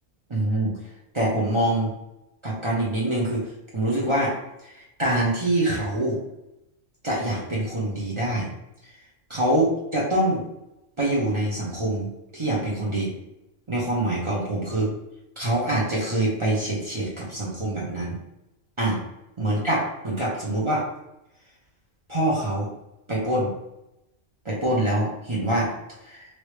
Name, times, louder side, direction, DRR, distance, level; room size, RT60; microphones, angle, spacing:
voice 1, 0.3-1.9 2.4-4.4 4.6-6.2 7.0-8.5 8.8-8.9 9.3-10.5 11.0-13.1 13.7-14.9 15.4-18.2 18.8-19.0 19.4-20.9 22.1-22.7 23.1-23.5 24.4-26.3, right 1 dB, 35° right, -5 dB, 0.5 m, -25 dB
3.1 x 2.7 x 3.1 m, 0.90 s
omnidirectional pair, 1.4 m